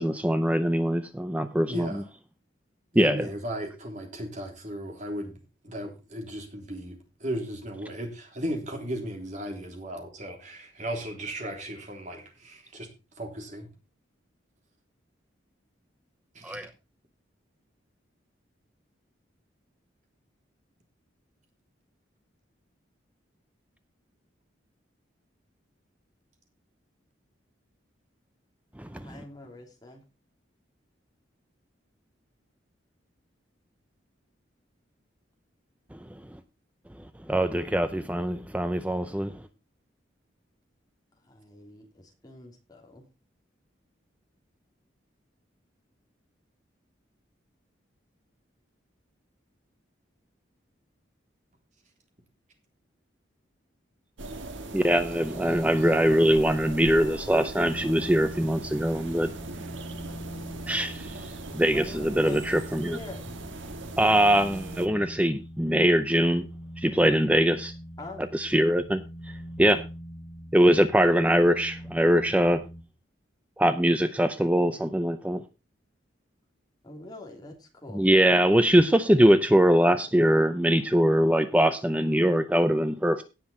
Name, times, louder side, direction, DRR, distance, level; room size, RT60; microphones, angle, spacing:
voice 1, 0.0-1.9 3.0-3.3 16.4-16.7 28.8-29.2 35.9-36.0 37.3-39.4 54.7-59.3 60.7-63.0 64.0-66.5 66.8-67.7 68.3-69.0 69.6-69.8 70.5-72.6 73.6-75.4 77.9-83.2, equal, 5° right, 10 dB, 0.5 m, -22 dB
voice 2, 1.7-2.0 2.9-5.4 5.6-12.9 13.2-13.7 16.3-16.6 29.5-29.6, equal, 40° right, 2 dB, 3.3 m, -36 dB
voice 3, 28.9-30.0 41.3-43.0 61.7-63.2 68.0-68.2 76.8-78.1, left 2 dB, 20° left, 1 dB, 3.0 m, -44 dB
sound 1, 54.2-64.9, right 2 dB, 85° right, 1.5 m, -40 dB
sound 2, 57.6-72.8, equal, 55° left, 2.6 m, -42 dB
17.5 x 5.9 x 4.3 m, 0.30 s
head